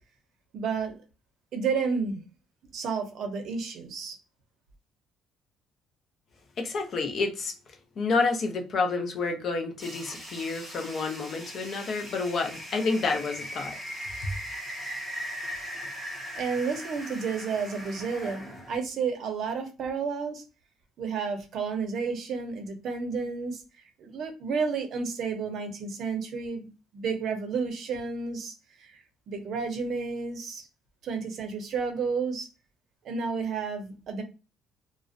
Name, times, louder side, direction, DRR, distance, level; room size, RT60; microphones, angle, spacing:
voice 1, 0.5-1.0 1.5-2.2 2.7-4.2 16.4-20.4 21.0-23.6 24.0-30.7 31.0-32.5 33.0-34.2, right 5 dB, 50° right, 0.6 m, -31 dB
voice 2, 6.6-7.5 8.0-13.8 14.2-14.3, left 4 dB, 40° left, 0.5 m, -29 dB
sound 1, 9.8-18.8, equal, 5° left, 0.7 m, -39 dB
2.4 x 2.1 x 2.5 m
cardioid pair, 150°, 0 cm